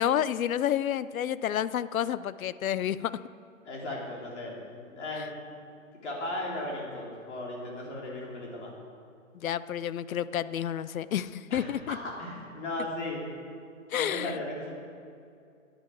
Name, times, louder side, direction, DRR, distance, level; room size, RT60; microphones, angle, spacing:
voice 1, 0.0-3.1 9.3-12.0 13.9-14.3, left 10 dB, 80° left, 16 dB, 0.6 m, -29 dB
voice 2, 3.6-5.4 6.0-8.7 11.5-13.2 14.0-14.7, left 1 dB, 55° left, -3 dB, 2.8 m, -36 dB
11.0 x 8.9 x 6.4 m, 2.5 s
hypercardioid pair, 160°, 41 cm